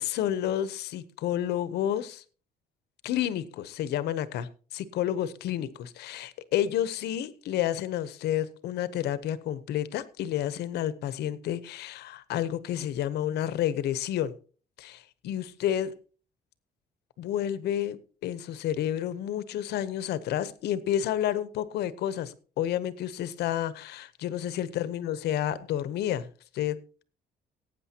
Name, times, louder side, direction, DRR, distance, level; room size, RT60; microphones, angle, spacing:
voice 1, 0.0-2.2 3.0-14.3 14.8-15.9 17.2-26.3 26.5-26.8, left 11 dB, 85° left, 0.9 m, -30 dB
18.5 x 9.0 x 2.9 m
cardioid pair, 145°, 17 cm